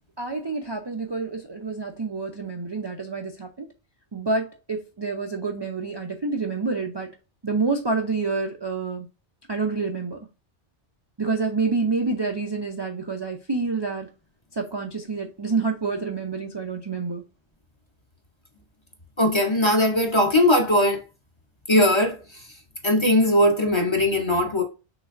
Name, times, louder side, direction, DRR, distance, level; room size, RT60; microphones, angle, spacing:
voice 1, 0.2-3.7 4.1-7.1 7.4-9.1 9.5-10.2 11.2-14.1 14.5-17.2, right 4 dB, 35° right, 0.4 m, -28 dB
voice 2, 19.2-21.0 21.7-22.2 22.8-24.6, left 1 dB, 30° left, 0.7 m, -19 dB
6.0 x 3.2 x 2.5 m
omnidirectional pair, 1.2 m